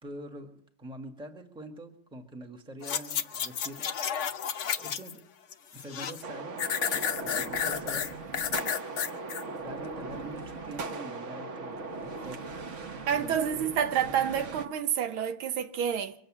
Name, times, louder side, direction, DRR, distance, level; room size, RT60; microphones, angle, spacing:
voice 1, 0.0-3.9 4.2-4.4 4.7-5.2 5.7-6.6 7.2-8.1 9.6-12.6 13.1-13.7 14.0-14.2, right 1 dB, 5° right, 1.2 m, -45 dB
sound 1, 2.8-5.2 5.5-6.2 6.6-9.4 9.9-10.0, left 8 dB, 65° left, 0.7 m, -31 dB
sound 2, 6.2-14.7, right 3 dB, 45° right, 1.1 m, -39 dB
voice 2, 13.1-16.1, right 8 dB, 80° right, 1.7 m, -28 dB
23.5 x 8.1 x 7.4 m
omnidirectional pair, 2.2 m